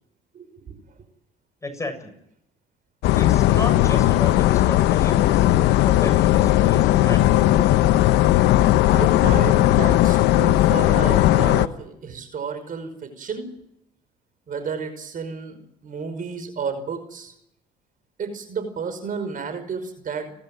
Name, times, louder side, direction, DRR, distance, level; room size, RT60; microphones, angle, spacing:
voice 1, 0.3-0.8 7.1-8.0 8.9-13.5 14.5-17.3 18.2-20.3, right 5 dB, 50° right, 9 dB, 5.4 m, -32 dB
voice 2, 1.6-2.1 3.1-5.5 5.8-7.3, left 2 dB, 15° left, 6 dB, 7.4 m, -32 dB
sound 1, 3.0-11.7, left 14 dB, 75° left, 0.9 m, -17 dB
30.0 x 13.0 x 9.2 m, 0.76 s
supercardioid pair, 70°, 18 cm